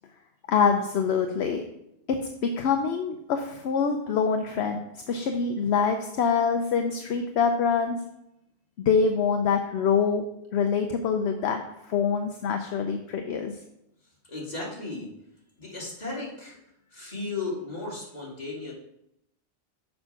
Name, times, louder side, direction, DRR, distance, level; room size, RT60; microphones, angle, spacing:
voice 1, 0.5-1.6 2.1-8.0 8.8-10.3 10.5-13.6, left 6 dB, 70° left, 5 dB, 0.9 m, -25 dB
voice 2, 14.3-15.1 15.6-16.6 16.9-18.7, left 3 dB, 35° left, -4 dB, 2.4 m, -35 dB
6.8 x 5.3 x 5.7 m, 0.81 s
omnidirectional pair, 1.2 m